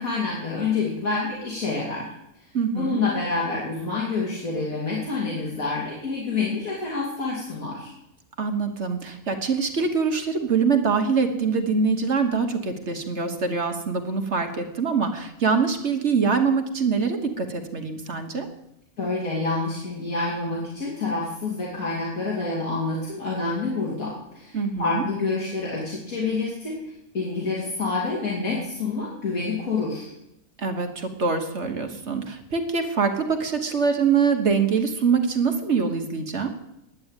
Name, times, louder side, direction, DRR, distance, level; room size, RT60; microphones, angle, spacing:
voice 1, 0.0-2.1 2.7-7.9 19.0-30.1, left 3 dB, 75° left, -5 dB, 3.1 m, -27 dB
voice 2, 2.5-3.0 8.4-18.5 24.5-25.0 30.6-36.5, right 5 dB, 55° right, 5 dB, 1.4 m, -24 dB
10.5 x 9.2 x 8.9 m, 0.83 s
omnidirectional pair, 1.5 m